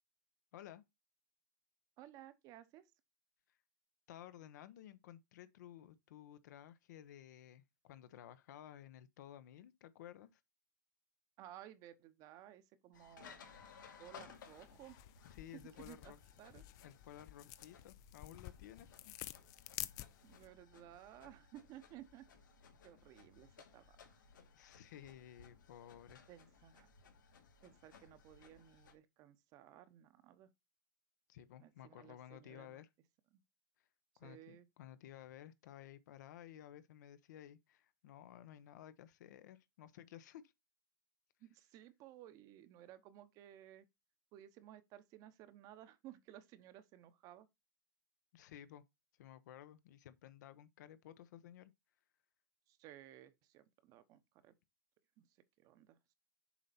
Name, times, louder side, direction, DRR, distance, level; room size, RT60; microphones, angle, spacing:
voice 1, 0.5-0.8 4.1-10.4 15.2-16.2 16.8-19.1 24.5-26.2 31.3-32.9 34.2-40.5 48.3-48.8 49.2-51.7, left 11 dB, 65° left, 0.9 m, -55 dB
voice 2, 2.0-2.9 11.4-13.4 14.0-15.0 15.8-16.6 20.2-22.3 22.8-24.1 26.3-26.9 27.6-30.5 31.6-32.8 33.3-33.4 34.2-34.7 41.4-43.9 44.3-47.5 52.7-54.5 55.2-55.3 55.6-56.1, right 12 dB, 35° right, 0.9 m, -57 dB
sound 1, 12.9-29.0, left 6 dB, 90° left, 2.4 m, -61 dB
sound 2, 14.3-20.5, left 16 dB, 35° left, 0.5 m, -51 dB
7.2 x 4.2 x 4.2 m
hypercardioid pair, 140°, 10 cm